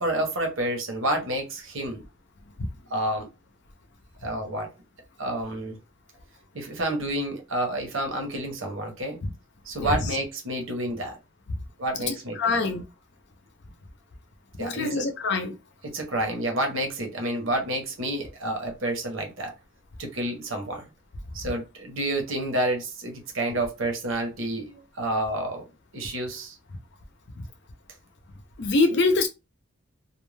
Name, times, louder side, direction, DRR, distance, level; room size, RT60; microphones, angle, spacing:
voice 1, 0.0-2.0 2.9-3.3 4.2-4.7 5.2-5.8 6.5-9.2 9.7-11.2 11.8-12.6 14.6-15.1 15.8-19.5 20.0-20.9 21.3-25.6 25.9-26.6, right 1 dB, 75° right, 0.9 m, -29 dB
voice 2, 9.8-10.2 12.1-12.8 14.6-15.5 27.4-27.5 28.6-29.3, left 3 dB, 60° left, 0.5 m, -25 dB
2.4 x 2.2 x 3.2 m
head